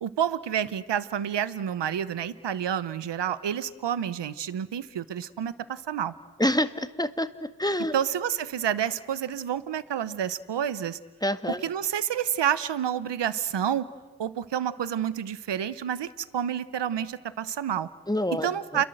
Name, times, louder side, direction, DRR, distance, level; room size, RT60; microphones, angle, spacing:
voice 1, 0.0-6.1 7.9-11.0 11.5-13.9 14.2-17.9 18.3-18.9, right 9 dB, 90° right, 15 dB, 1.0 m, -29 dB
voice 2, 6.4-7.3 7.6-7.9 11.2-11.6 18.1-18.8, left 1 dB, 10° left, 10 dB, 1.7 m, -27 dB
29.0 x 22.5 x 7.9 m, 1.2 s
cardioid pair, 45°, 41 cm